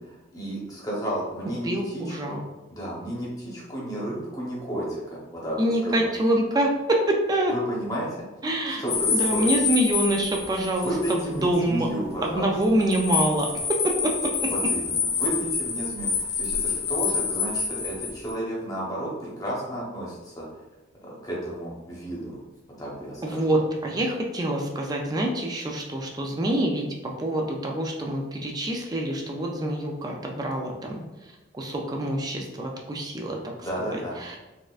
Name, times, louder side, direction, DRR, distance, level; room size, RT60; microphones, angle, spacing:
voice 1, 0.0-2.4 2.7-5.6 5.8-6.1 7.5-8.2 8.7-9.5 10.5-12.5 14.5-20.6 21.0-22.4 22.8-23.4 33.6-34.2, right 1 dB, 20° left, -5 dB, 0.9 m, -32 dB
voice 2, 1.6-2.4 5.6-7.5 8.4-8.8 9.1-11.9 12.2-14.1 14.4-14.5 23.2-33.5 33.9-34.5, right 1 dB, 20° right, 0 dB, 0.3 m, -26 dB
sound 1, 8.9-11.2 11.5-11.6 12.6-18.3, left 5 dB, 55° left, 0.7 m, -27 dB
4.1 x 2.4 x 2.4 m, 1.1 s
head